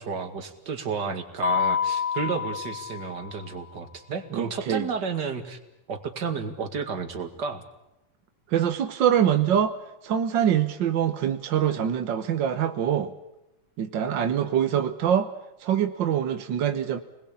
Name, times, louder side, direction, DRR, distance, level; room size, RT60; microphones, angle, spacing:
voice 1, 0.0-5.6 5.9-7.6, right 5 dB, 35° right, 7 dB, 2.4 m, -32 dB
Mallet percussion, 1.4-3.5, left 7 dB, 85° left, 0.5 m, -28 dB
voice 2, 4.3-4.9 8.5-9.8 10.0-13.1 13.8-15.3 15.6-17.0, right 9 dB, 65° right, 8 dB, 1.2 m, -24 dB
28.0 x 20.5 x 8.6 m, 0.91 s
omnidirectional pair, 3.5 m